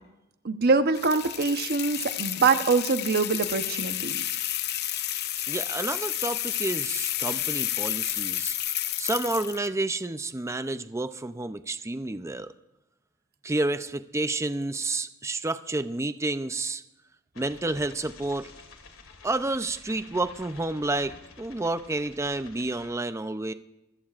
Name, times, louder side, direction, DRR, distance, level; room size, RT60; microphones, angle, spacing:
voice 1, 0.4-4.2, right 4 dB, 50° right, 9 dB, 0.9 m, -24 dB
sound 1, 0.9-9.7, left 12 dB, 55° left, 0.7 m, -31 dB
voice 2, 5.5-8.6 9.0-12.5 13.4-16.8 17.4-18.5 19.2-23.5, right 2 dB, 15° right, 11 dB, 0.5 m, -30 dB
sound 2, 17.3-22.9, left 4 dB, 85° left, 2.5 m, -50 dB
25.5 x 16.0 x 2.5 m, 0.92 s
head